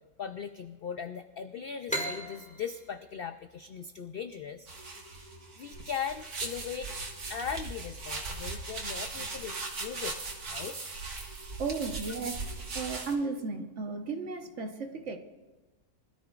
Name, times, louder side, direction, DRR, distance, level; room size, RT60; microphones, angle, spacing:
voice 1, 0.2-4.7 5.6-7.0 7.3-10.2 10.5-10.8, left 7 dB, 70° left, 9 dB, 0.5 m, -39 dB
sound 1, 1.9-5.3, equal, 5° left, 2.0 m, -39 dB
sound 2, 4.7-13.1, right 3 dB, 80° right, 2.2 m, -39 dB
voice 2, 11.6-15.2, right 4 dB, 55° right, 5 dB, 1.3 m, -35 dB
23.5 x 13.5 x 2.4 m, 1.2 s
omnidirectional pair, 1.6 m